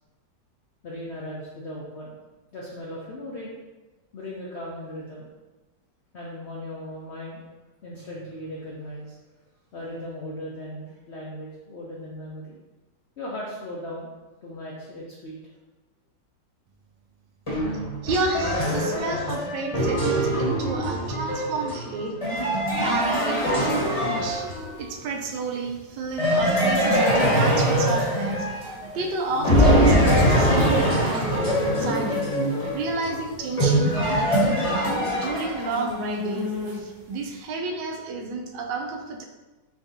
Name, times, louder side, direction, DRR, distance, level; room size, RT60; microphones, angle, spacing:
voice 1, 0.8-2.2 2.5-3.6 4.1-5.3 6.1-7.4 7.8-9.2 9.7-12.6 13.2-14.1 14.4-15.4, left 1 dB, 70° left, -4 dB, 0.6 m, -37 dB
sound 1, 17.5-24.9 26.2-29.0 29.4-35.9, equal, 25° left, 0.8 m, -23 dB
voice 2, 18.0-22.2 22.8-24.5 24.8-32.3 32.7-39.2, right 3 dB, 80° right, 3 dB, 1.3 m, -31 dB
sound 2, 22.9-37.1, right 2 dB, 60° right, 1.4 m, -32 dB
4.7 x 3.5 x 2.7 m, 1.2 s
omnidirectional pair, 1.9 m